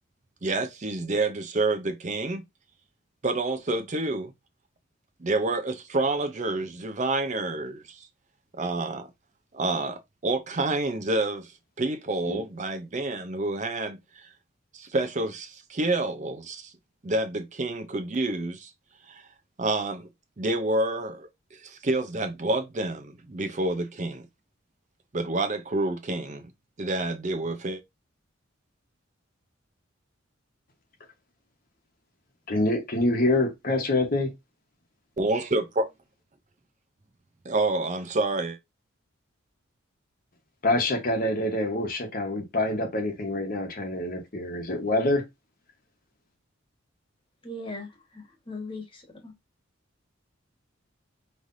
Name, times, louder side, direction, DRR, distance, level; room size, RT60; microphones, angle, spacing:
voice 1, 0.4-2.4 3.2-4.3 5.2-8.1 8.5-9.1 9.5-14.3 14.7-16.7 17.0-18.7 19.1-19.3 19.6-20.1 20.4-24.3 25.1-26.5 26.8-27.8 35.2-35.9 37.5-38.6, right 2 dB, 35° right, 0.6 m, -28 dB
voice 2, 32.5-34.3 40.6-45.3, left 1 dB, 45° left, 1.1 m, -26 dB
voice 3, 47.4-49.3, left 2 dB, 25° left, 1.4 m, -39 dB
5.5 x 3.2 x 2.6 m
head